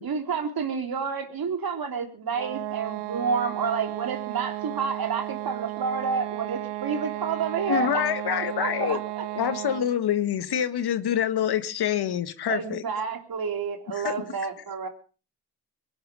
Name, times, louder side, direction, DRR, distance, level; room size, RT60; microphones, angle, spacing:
voice 1, 0.0-9.2 12.5-14.9, right 5 dB, 55° right, 3.4 m, -29 dB
sound 1, 2.3-10.0, right 19 dB, 80° right, 0.9 m, -34 dB
voice 2, 7.7-9.0 9.3-12.8 13.9-14.1, left 9 dB, 65° left, 1.6 m, -26 dB
23.0 x 10.5 x 5.0 m
supercardioid pair, 45°, 42 cm